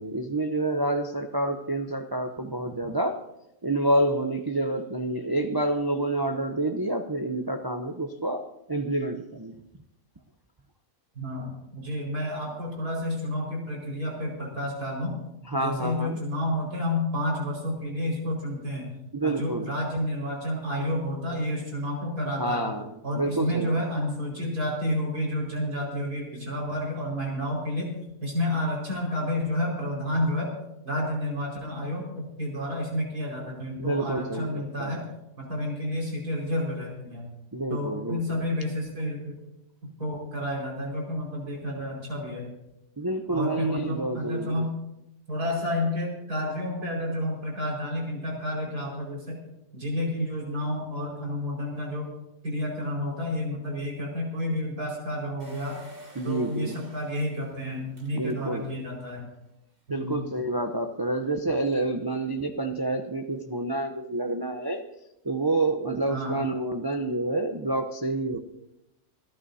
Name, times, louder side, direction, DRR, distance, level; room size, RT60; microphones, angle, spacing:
voice 1, 0.0-3.2 3.6-9.6 15.5-16.2 19.1-19.7 22.4-23.8 33.8-35.0 37.5-38.4 43.0-44.6 56.2-56.8 58.1-58.7 59.9-64.8 65.2-68.4, right 2 dB, 35° right, 5 dB, 0.3 m, -28 dB
voice 2, 11.2-15.1 15.5-18.9 19.2-22.7 23.0-27.9 28.2-30.5 30.8-35.0 35.4-37.3 37.7-39.3 40.0-42.5 43.3-44.7 45.3-49.4 49.7-52.1 52.4-55.8 56.2-59.3 59.9-60.2 66.1-66.4, left 1 dB, 90° right, -2 dB, 5.6 m, -30 dB
Engine, 55.4-58.9 59.3-59.4 59.6-59.7, equal, 60° right, 3.2 m, -50 dB
26.5 x 13.5 x 2.7 m, 0.87 s
omnidirectional pair, 1.6 m